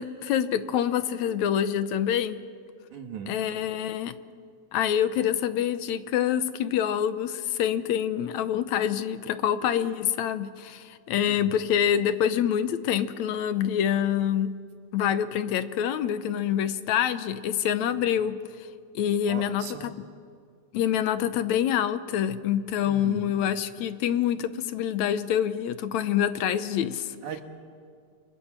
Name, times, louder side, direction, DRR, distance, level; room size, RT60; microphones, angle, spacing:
voice 1, 0.0-2.4 3.3-4.1 4.7-14.6 14.9-18.4 19.0-19.9 20.7-27.2, left 9 dB, 75° left, 12 dB, 2.1 m, -26 dB
voice 2, 2.9-3.3 11.3-11.5 17.9-18.0 19.3-19.9 22.8-23.3 27.2-27.4, right 7 dB, 85° right, 6 dB, 3.2 m, -38 dB
29.0 x 25.0 x 7.5 m, 2.2 s
omnidirectional pair, 3.4 m